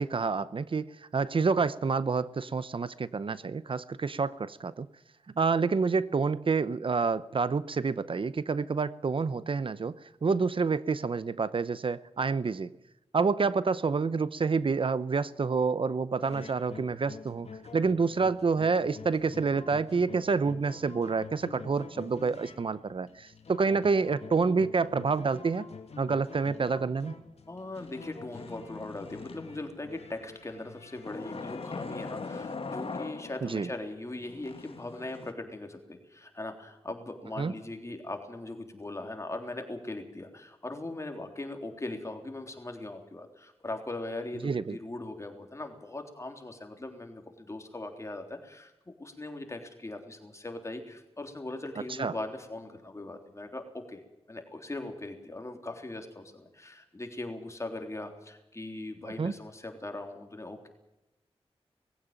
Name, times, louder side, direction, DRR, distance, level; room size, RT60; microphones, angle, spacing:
voice 1, 0.0-4.9 5.4-12.7 13.1-25.7 26.0-27.1 33.4-33.7 37.4-37.5 44.4-44.8 52.0-52.1 59.2-59.3, right 4 dB, 55° right, 16 dB, 0.7 m, -28 dB
sound 1, 16.2-32.5, left 4 dB, 75° left, 2.7 m, -48 dB
voice 2, 27.5-54.0 54.3-60.7, left 2 dB, 25° left, 4 dB, 3.6 m, -40 dB
sound 2, 27.7-29.8 31.1-33.7 34.2-35.3, left 4 dB, 60° left, 1.9 m, -41 dB
20.0 x 16.0 x 9.0 m, 0.93 s
wide cardioid pair, 105°, 11 cm